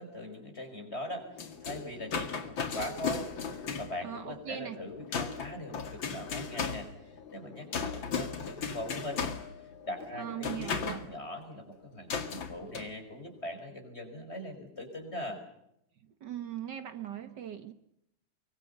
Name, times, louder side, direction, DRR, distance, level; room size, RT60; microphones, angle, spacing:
voice 1, 0.0-9.2 9.5-15.4, left 1 dB, 30° left, 5 dB, 5.7 m, -41 dB
sound 1, 1.1-11.1 12.1-12.9, left 6 dB, 75° left, 2.8 m, -37 dB
voice 2, 4.0-4.8 10.1-11.0 16.2-17.7, right 10 dB, 65° right, 10 dB, 1.8 m, -39 dB
24.5 x 24.0 x 6.9 m, 0.79 s
omnidirectional pair, 2.1 m